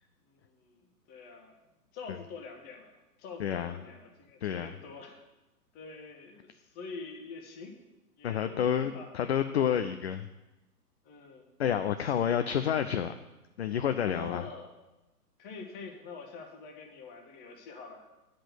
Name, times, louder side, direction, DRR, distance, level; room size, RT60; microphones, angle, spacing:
voice 1, 0.3-1.5 1.9-5.2 5.7-7.8 8.2-9.9 11.0-11.5 12.0-12.3 14.0-14.7 15.4-18.1, left 4 dB, 20° left, 4 dB, 1.1 m, -46 dB
voice 2, 3.4-3.7 4.4-4.7 8.2-10.3 11.6-13.1 13.6-14.4, left 9 dB, 45° left, 9 dB, 0.4 m, -29 dB
8.5 x 5.2 x 7.7 m, 1.0 s
hypercardioid pair, 130°, 47 cm